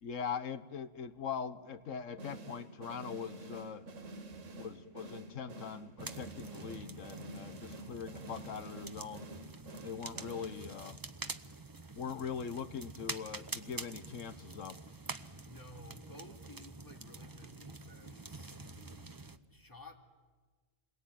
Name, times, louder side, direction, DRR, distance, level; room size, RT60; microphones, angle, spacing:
voice 1, 0.0-3.9 4.5-9.3 9.8-11.0 12.0-14.8, left 6 dB, 80° left, 1.5 m, -42 dB
sound 1, 2.2-11.0, right 2 dB, 80° right, 1.8 m, -49 dB
sound 2, 6.0-19.4, right 3 dB, 20° right, 0.7 m, -47 dB
voice 2, 15.4-20.0, left 1 dB, 15° left, 2.3 m, -55 dB
28.5 x 21.5 x 9.2 m
omnidirectional pair, 1.3 m